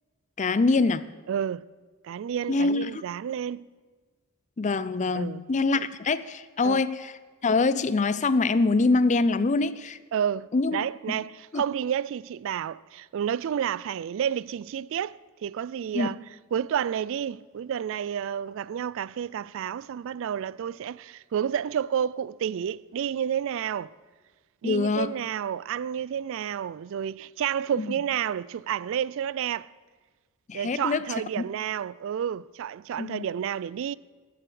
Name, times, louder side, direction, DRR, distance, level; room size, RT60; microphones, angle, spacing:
voice 1, 0.4-1.1 2.5-3.0 4.6-7.1 7.4-10.0 10.5-11.2 11.5-11.6 15.9-16.1 24.6-25.1 27.8-27.9 30.5-31.0 31.4-31.5 33.0-33.2, left 3 dB, 35° left, 0.4 m, -24 dB
voice 2, 1.3-1.6 2.0-3.7 5.1-5.4 5.7-5.9 6.6-6.8 10.1-16.2 16.5-23.9 24.6-29.7 30.5-33.9, right 9 dB, 60° right, 0.3 m, -30 dB
14.5 x 7.9 x 7.8 m
head